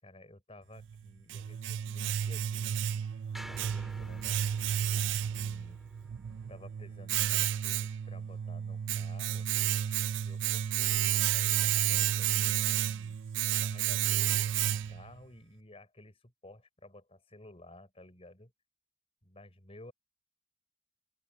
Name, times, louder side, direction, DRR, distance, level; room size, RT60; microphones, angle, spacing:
voice 1, 0.0-3.2 3.5-5.8 6.5-9.5 10.2-13.2 13.6-18.5 19.2-19.9, left 1 dB, 30° left, 5.3 m, -54 dB
Domestic sounds home sounds, 0.8-15.1, right 10 dB, 80° right, 0.4 m, -31 dB
sound 1, 3.3-7.7, equal, ahead, 2.4 m, -51 dB
open air
head